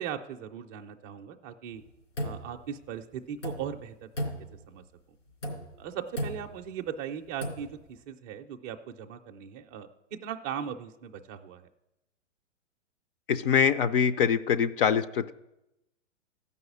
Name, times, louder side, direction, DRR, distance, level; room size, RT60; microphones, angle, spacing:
voice 1, 0.0-1.8 2.2-4.3 4.7-4.8 5.8-11.7, right 8 dB, 15° right, 3 dB, 0.4 m, -38 dB
sound 1, 1.7-2.9 3.3-3.9 4.1-4.9 5.3-5.9 6.1-6.7 7.3-7.8, equal, 80° left, 3.6 m, -36 dB
voice 2, 13.3-15.3, left 7 dB, 45° left, 12 dB, 0.6 m, -24 dB
14.0 x 5.5 x 8.3 m, 0.90 s
hypercardioid pair, 145°, 37 cm